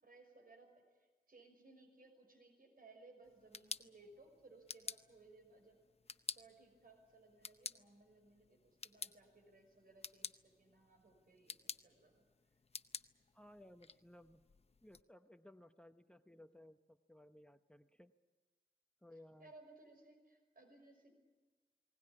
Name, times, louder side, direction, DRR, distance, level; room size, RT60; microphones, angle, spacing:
voice 1, 0.0-5.8 6.3-12.2 19.4-21.1, right 2 dB, 65° right, 5 dB, 6.0 m, -63 dB
sound 1, 3.2-15.0, left 4 dB, 40° left, 0.7 m, -52 dB
voice 2, 13.3-14.4 14.8-18.1 19.0-19.5, left 1 dB, 5° left, 9 dB, 0.9 m, -60 dB
20.0 x 19.0 x 9.9 m, 1.3 s
cardioid pair, 65°, 16 cm